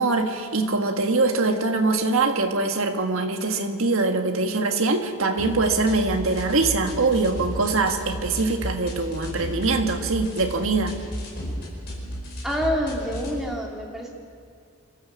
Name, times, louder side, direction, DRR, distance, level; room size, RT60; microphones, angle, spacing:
voice 1, 0.0-11.0, right 3 dB, 65° right, 4 dB, 1.6 m, -23 dB
sound 1, 5.4-13.4, equal, 50° left, 5.3 m, -34 dB
voice 2, 12.4-14.1, equal, ahead, -2 dB, 2.6 m, -27 dB
26.0 x 13.5 x 7.4 m, 2.2 s
head